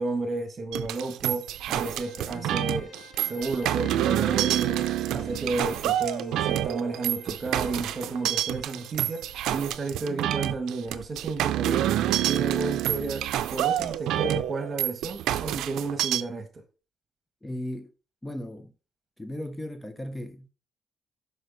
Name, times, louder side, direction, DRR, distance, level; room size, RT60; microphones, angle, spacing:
voice 1, 0.0-2.9 3.2-11.9 12.2-16.6, right 3 dB, 40° right, 1.5 m, -32 dB
sound 1, 0.7-16.2, right 12 dB, 85° right, 0.4 m, -28 dB
Bowed string instrument, 1.3-9.6, left 4 dB, 50° left, 2.0 m, -52 dB
voice 2, 17.4-17.9 18.2-18.7 19.2-20.5, left 1 dB, 10° left, 0.7 m, -36 dB
6.3 x 5.5 x 4.0 m
cardioid pair, 90°, 0 cm